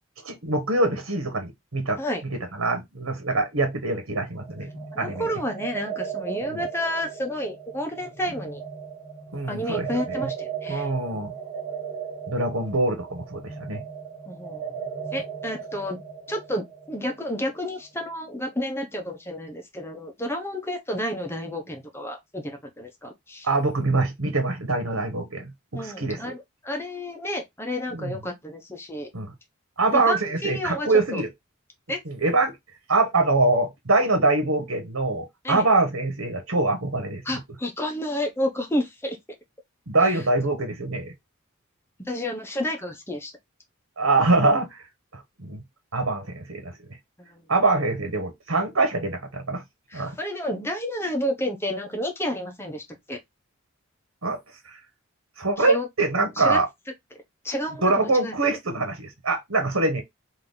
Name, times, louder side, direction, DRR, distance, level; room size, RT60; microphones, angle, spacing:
voice 1, 0.2-2.0 2.6-4.7 5.0-5.3 6.5-6.6 9.3-10.2 10.7-11.3 12.3-13.8 23.4-26.2 27.9-28.2 29.1-29.3 29.8-31.3 32.1-32.5 32.9-37.2 39.9-41.1 44.0-44.8 45.4-45.6 45.9-46.7 47.5-49.6 49.9-50.2 54.2-54.4 55.4-56.7 57.8-60.0, right 2 dB, 90° right, 1.3 m, -24 dB
sound 1, 4.4-18.0, right 7 dB, 35° right, 2.2 m, -36 dB
voice 2, 4.9-8.6 9.5-10.9 14.3-14.7 15.1-16.0 16.3-23.5 25.7-29.1 29.9-31.2 31.9-32.0 35.4-35.7 37.2-39.2 40.0-40.2 42.0-43.3 47.2-47.4 49.9-53.2 55.6-55.9 56.4-56.6 57.4-58.6, left 1 dB, 10° left, 1.1 m, -30 dB
3.9 x 3.0 x 4.0 m
head